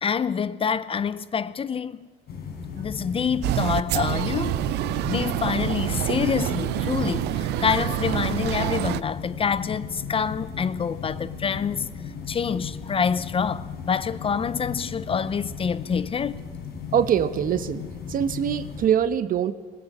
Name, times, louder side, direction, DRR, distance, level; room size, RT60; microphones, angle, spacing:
voice 1, 0.0-2.1 2.7-4.6 5.1-11.9 12.3-16.4, left 6 dB, 35° left, 0.7 m, -26 dB
sound 1, 2.3-18.9, left 6 dB, 70° left, 4.3 m, -36 dB
sound 2, 3.4-9.0, right 15 dB, 80° right, 0.6 m, -27 dB
voice 2, 16.9-17.8 18.1-19.5, right 9 dB, 55° right, 1.1 m, -23 dB
19.5 x 18.5 x 8.5 m
cardioid pair, 110°, 17 cm